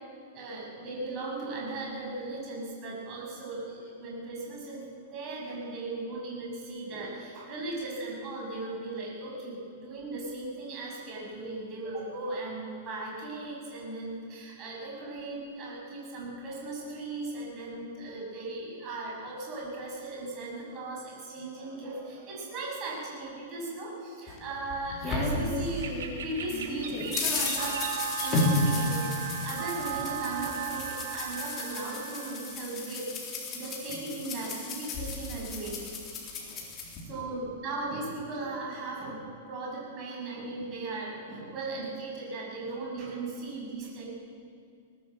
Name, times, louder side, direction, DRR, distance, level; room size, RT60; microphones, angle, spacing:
voice 1, 0.3-25.9 26.2-27.8 28.2-33.1 33.5-35.9 36.4-36.6 37.0-44.1, right 2 dB, 25° right, -3 dB, 7.0 m, -37 dB
sound 1, 24.3-26.1 26.5-37.0, left 2 dB, 20° left, 3.7 m, -33 dB
sound 2, 25.6-31.0, right 5 dB, 75° right, 3.2 m, -41 dB
sound 3, 27.6-32.6, right 10 dB, 50° right, 1.1 m, -36 dB
20.5 x 18.0 x 8.0 m, 2.3 s
supercardioid pair, 170°, 0 cm